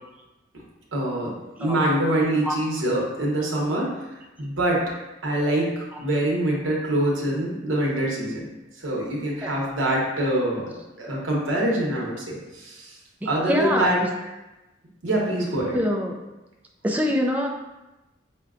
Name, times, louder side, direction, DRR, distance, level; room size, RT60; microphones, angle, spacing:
voice 1, 0.9-1.3 1.6-3.9 4.4-4.8 5.2-8.4 8.8-10.6 11.0-12.9 13.2-14.0 15.0-15.7, right 1 dB, 80° right, -3 dB, 0.9 m, -24 dB
voice 2, 1.6-1.9 2.4-2.6 5.9-6.0 9.4-9.5 13.2-14.1 15.7-16.2 16.8-17.5, equal, 10° right, 0 dB, 0.3 m, -25 dB
5.6 x 2.2 x 2.4 m, 1.0 s
head